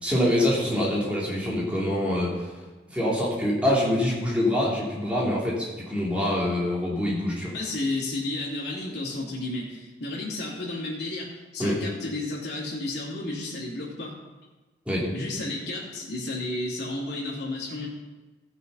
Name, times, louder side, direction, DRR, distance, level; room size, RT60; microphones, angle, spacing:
voice 1, 0.0-2.5 2.9-7.5 11.6-11.7 14.9-15.1, left 1 dB, 5° right, -6 dB, 2.9 m, -25 dB
voice 2, 7.5-14.2 15.1-17.9, left 2 dB, 65° left, -4 dB, 2.7 m, -32 dB
15.0 x 6.3 x 5.5 m, 1.2 s
head